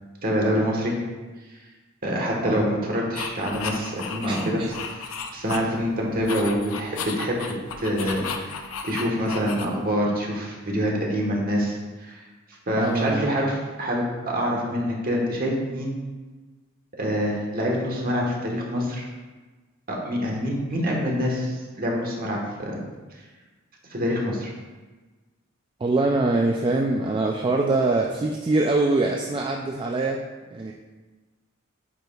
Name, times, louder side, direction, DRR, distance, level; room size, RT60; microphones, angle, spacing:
voice 1, 0.2-0.9 2.0-7.4 7.8-12.2 12.7-16.0 17.0-19.1 19.9-22.8 23.9-24.5, equal, 45° right, -2 dB, 1.3 m, -26 dB
sound 1, 3.2-5.9 6.2-10.0, left 5 dB, 75° left, 0.6 m, -34 dB
voice 2, 4.2-4.7 12.8-13.3 25.8-30.2 30.5-30.7, right 2 dB, 25° right, 0 dB, 0.3 m, -23 dB
9.1 x 4.8 x 2.4 m, 1.3 s
head